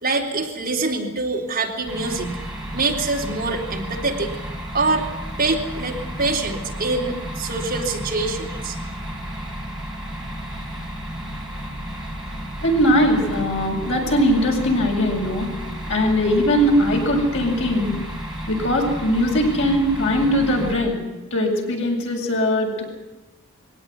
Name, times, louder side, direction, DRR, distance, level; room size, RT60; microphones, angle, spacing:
voice 1, 0.0-2.3 2.7-4.3 4.7-5.1 5.4-8.8, right 3 dB, 45° right, -1 dB, 3.8 m, -24 dB
sound 1, 1.9-20.8, equal, 5° right, 5.3 m, -32 dB
voice 2, 12.6-15.5 15.9-17.9 18.5-21.0 21.3-22.8, equal, 65° left, 0 dB, 8.0 m, -20 dB
23.0 x 18.0 x 9.7 m, 1.1 s
head